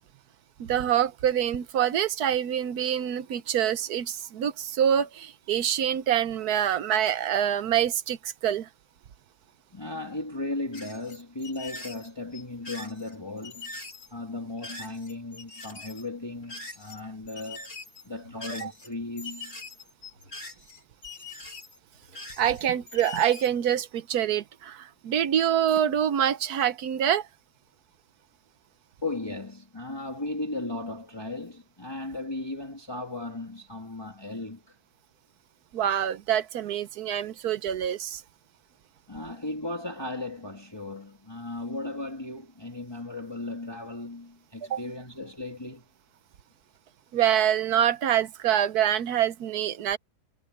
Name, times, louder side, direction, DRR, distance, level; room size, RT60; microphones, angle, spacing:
voice 1, 0.6-8.7 18.6-18.7 22.4-27.3 35.7-38.2 44.7-44.8 47.1-50.0, right 10 dB, 70° right, 1.3 m, -25 dB
voice 2, 9.7-13.7 14.1-17.7 18.0-19.6 29.0-34.8 39.1-45.9, left 2 dB, 15° left, 2.2 m, -36 dB
sound 1, 10.7-17.0 17.3-23.5, left 3 dB, 60° left, 6.8 m, -43 dB
omnidirectional pair, 1.8 m